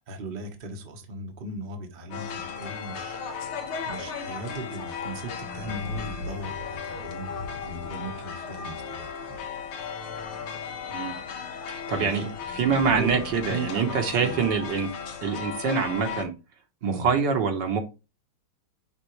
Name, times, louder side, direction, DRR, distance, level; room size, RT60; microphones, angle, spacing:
voice 1, 0.0-3.5 3.8-9.4 12.0-12.3 12.9-14.4 16.8-17.1, right 2 dB, 35° right, 0.9 m, -37 dB
sound 1, 2.1-16.3, left 6 dB, 75° left, 2.1 m, -36 dB
voice 2, 11.7-12.3 12.5-14.9 15.2-16.3 16.8-17.8, right 5 dB, 60° right, 1.5 m, -25 dB
9.7 x 3.7 x 3.0 m
omnidirectional pair, 2.4 m